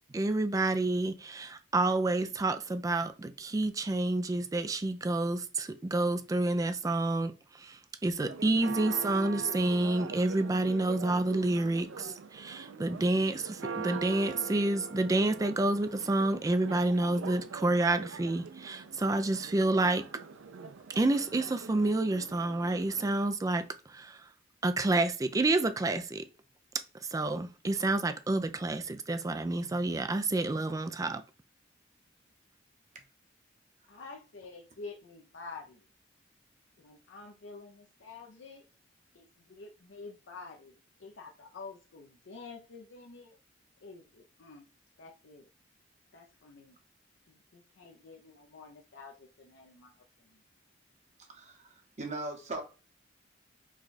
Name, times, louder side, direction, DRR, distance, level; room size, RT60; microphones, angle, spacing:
voice 1, 0.1-20.0 20.9-24.2 24.6-26.2 27.1-31.2, right 2 dB, 20° right, 0.3 m, -29 dB
Church bell, 8.2-23.2, right 5 dB, 80° right, 0.4 m, -43 dB
voice 2, 33.9-35.9 36.8-38.6 39.1-43.4 43.8-44.7 45.0-45.5 46.1-46.8 47.3-50.4, left 4 dB, 70° left, 0.6 m, -49 dB
voice 3, 51.3-52.6, right 2 dB, 40° right, 0.9 m, -39 dB
4.8 x 2.3 x 4.0 m
head